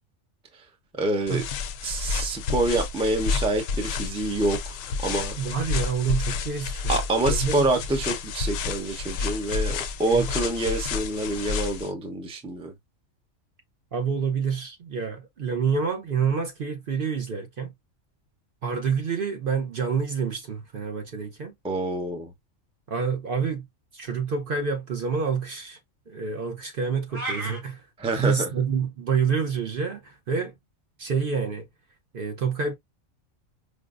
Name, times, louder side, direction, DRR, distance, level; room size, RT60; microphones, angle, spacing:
voice 1, 0.9-1.4 1.8-5.4 6.9-12.7 21.6-22.3 28.0-28.5, right 2 dB, 5° right, 0.4 m, -27 dB
sound 1, 1.3-11.9, left 5 dB, 80° left, 1.0 m, -30 dB
voice 2, 5.4-7.0 7.3-7.7 10.0-10.3 13.9-17.7 18.6-21.5 22.9-23.7 23.9-25.8 26.1-27.8 28.1-30.5 31.0-31.6 32.1-32.7, right 6 dB, 50° right, 0.7 m, -27 dB
sound 2, 27.1-27.6, right 1 dB, 30° right, 1.2 m, -31 dB
5.1 x 2.0 x 2.4 m
omnidirectional pair, 1.3 m